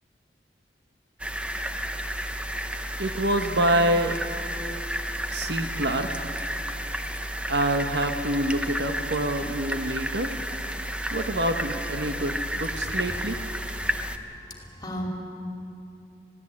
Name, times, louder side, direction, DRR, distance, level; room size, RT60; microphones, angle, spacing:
sound 1, 1.2-14.2, equal, 5° right, 0.8 m, -32 dB
voice 1, 3.0-4.2 5.3-6.3 7.5-10.4 11.1-13.4, right 1 dB, 70° right, 6 dB, 1.3 m, -26 dB
voice 2, 14.0-15.1, equal, 20° left, 1 dB, 2.7 m, -37 dB
21.5 x 16.5 x 8.6 m, 2.8 s
head